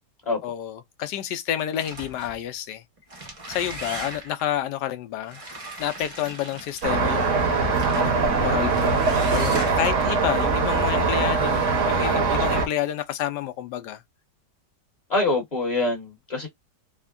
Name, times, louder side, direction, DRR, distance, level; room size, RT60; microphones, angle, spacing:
voice 1, 0.4-2.8 3.5-5.4 5.8-14.0, left 11 dB, 80° left, 1.2 m, -30 dB
sound 1, 1.7-2.4 3.0-4.4 5.3-7.0 7.7-8.1 8.7-10.0, right 1 dB, 30° right, 0.7 m, -37 dB
Traffic noise roadway noise, 6.8-12.7, right 4 dB, 50° right, 1.1 m, -22 dB
voice 2, 15.1-16.5, left 2 dB, 25° left, 1.2 m, -24 dB
3.5 x 2.1 x 2.3 m
omnidirectional pair, 1.9 m